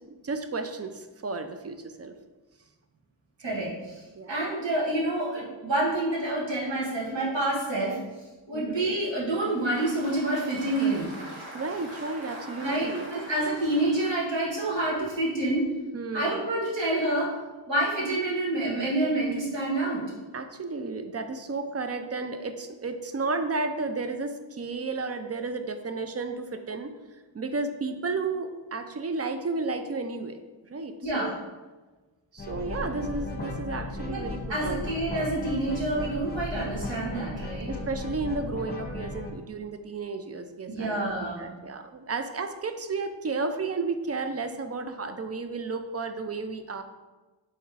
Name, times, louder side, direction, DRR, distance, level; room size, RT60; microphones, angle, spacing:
voice 1, 0.1-2.1 4.1-4.3 8.5-8.8 11.5-13.1 15.9-16.5 20.3-26.9 27.3-30.4 30.7-31.3 32.3-34.9 37.7-46.8, right 3 dB, 35° right, 8 dB, 0.4 m, -33 dB
voice 2, 3.4-4.0 4.3-8.0 8.5-11.1 12.6-15.6 16.1-17.3 17.7-20.0 31.0-31.3 34.1-34.2 34.5-37.7 40.7-41.5, right 1 dB, 65° right, -5 dB, 1.5 m, -28 dB
Applause, 9.3-15.6, right 1 dB, 85° right, 1.1 m, -44 dB
sound 1, 32.4-39.3, left 2 dB, 20° left, 1.0 m, -35 dB
3.5 x 3.2 x 4.6 m, 1.2 s
cardioid pair, 60°, 48 cm